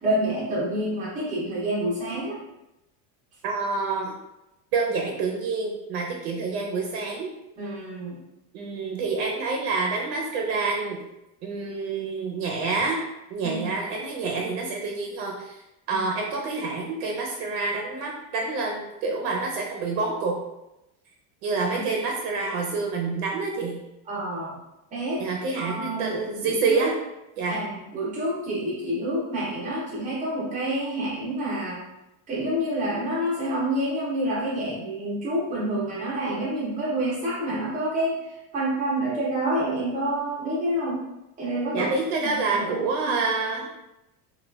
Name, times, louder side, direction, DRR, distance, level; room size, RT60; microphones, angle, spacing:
voice 1, 0.0-2.4 7.6-8.2 13.4-13.7 15.9-16.0 21.7-21.8 24.1-24.6 24.9-25.2 25.5-26.8 27.5-31.8 32.3-38.1 38.5-41.1 41.4-41.9 42.2-42.7 43.0-43.2, right 1 dB, 20° right, -6 dB, 0.5 m, -28 dB
voice 2, 3.4-4.1 4.7-7.3 8.5-11.0 11.4-13.0 13.3-15.6 15.9-20.4 21.4-23.8 25.2-27.0 27.4-27.6 41.7-43.7, right 4 dB, 85° right, 0 dB, 0.6 m, -27 dB
3.2 x 2.3 x 2.2 m, 0.92 s
cardioid pair, 180°, 45 cm